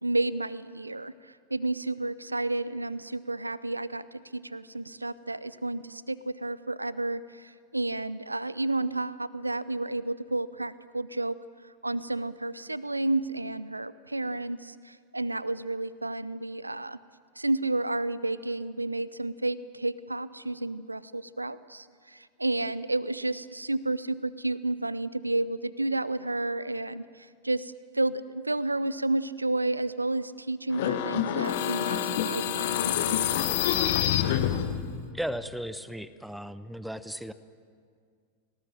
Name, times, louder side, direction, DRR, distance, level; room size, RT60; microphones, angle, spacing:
voice 1, 0.0-1.1 1.5-11.4 11.8-17.0 17.4-32.9, right 2 dB, 85° right, 18 dB, 0.5 m, -31 dB
sound 1, 30.7-35.0, left 10 dB, 55° left, 1.7 m, -27 dB
voice 2, 35.1-37.3, equal, ahead, 14 dB, 0.9 m, -36 dB
29.0 x 19.0 x 7.5 m, 2.2 s
figure-of-eight pair, 90°, 0 cm